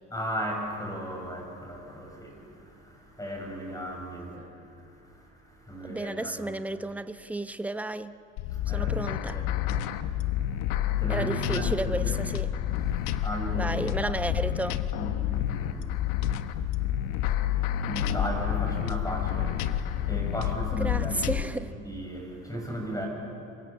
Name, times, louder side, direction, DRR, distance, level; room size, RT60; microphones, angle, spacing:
voice 1, 0.1-4.5 4.7-6.4 8.5-9.0 9.3-9.9 10.2-12.2 12.8-14.3 14.6-14.7 14.9-21.5 21.8-23.1, equal, 10° left, 1 dB, 7.1 m, -37 dB
voice 2, 5.8-8.1 8.7-9.4 11.1-12.5 13.5-14.8 20.7-21.7, right 2 dB, 5° right, 11 dB, 0.8 m, -32 dB
sound 1, 8.4-21.4, left 11 dB, 80° left, 1.1 m, -29 dB
27.0 x 23.5 x 7.4 m, 2.9 s
cardioid pair, 105°, 31 cm